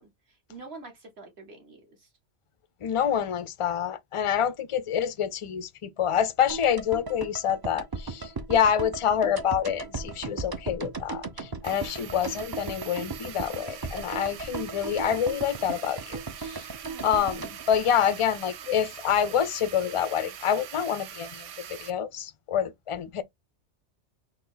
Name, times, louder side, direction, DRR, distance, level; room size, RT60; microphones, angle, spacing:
voice 1, 0.0-2.1 4.4-4.5 11.7-12.2 16.8-17.4, right 3 dB, 60° right, 2.2 m, -47 dB
voice 2, 2.8-16.6 17.0-23.2, left 8 dB, 50° left, 0.4 m, -27 dB
sound 1, 6.5-18.7 18.9-19.0, right 4 dB, 30° right, 0.5 m, -37 dB
sound 2, 11.6-21.9, right 10 dB, 90° right, 1.0 m, -43 dB
4.2 x 3.1 x 3.9 m
omnidirectional pair, 1.2 m